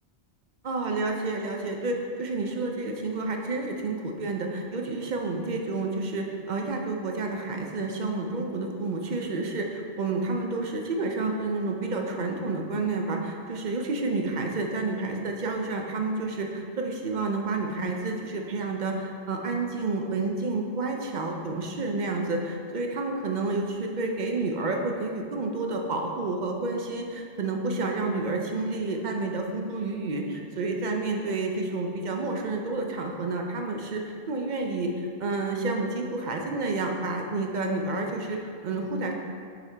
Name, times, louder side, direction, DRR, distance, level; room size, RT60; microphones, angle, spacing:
voice 1, 0.6-39.1, right 3 dB, 50° right, 2 dB, 0.6 m, -30 dB
6.7 x 4.9 x 3.3 m, 2.2 s
omnidirectional pair, 1.2 m